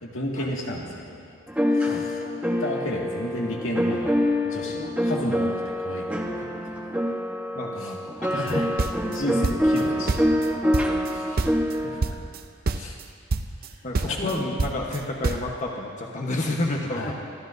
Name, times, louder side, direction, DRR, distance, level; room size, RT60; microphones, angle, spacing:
voice 1, 0.0-1.3 1.8-2.1 2.6-4.2 4.4-6.8 7.8-7.9 8.3-8.6 9.1-10.6 11.1-11.3 11.8-12.2 12.8-13.0 14.1-14.3 17.0-17.1, left 1 dB, 85° left, -2 dB, 2.0 m, -32 dB
sound 1, 1.5-11.9, equal, 5° right, 1.0 m, -26 dB
voice 2, 7.5-8.7 11.3-11.5 11.8-11.9 13.8-17.1, left 2 dB, 40° left, -1 dB, 1.1 m, -30 dB
sound 2, 8.5-9.8 10.1-11.1 11.4-11.7 12.0-12.4 12.7-13.0 13.3-13.7 13.9-15.5, right 3 dB, 50° right, 0.6 m, -27 dB
25.0 x 13.0 x 2.6 m, 2.2 s
head